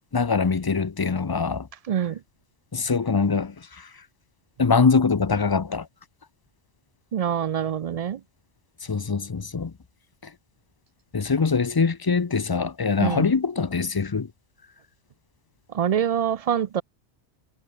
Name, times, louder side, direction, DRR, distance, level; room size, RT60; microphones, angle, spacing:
voice 1, 0.1-1.7 2.7-3.9 4.6-5.9 8.8-9.7 10.2-10.3 11.1-14.3, left 5 dB, 30° left, 0.4 m, -23 dB
voice 2, 1.9-2.2 7.1-8.2 13.0-13.3 15.7-16.8, right 9 dB, 75° right, 0.3 m, -25 dB
omnidirectional pair, 1.2 m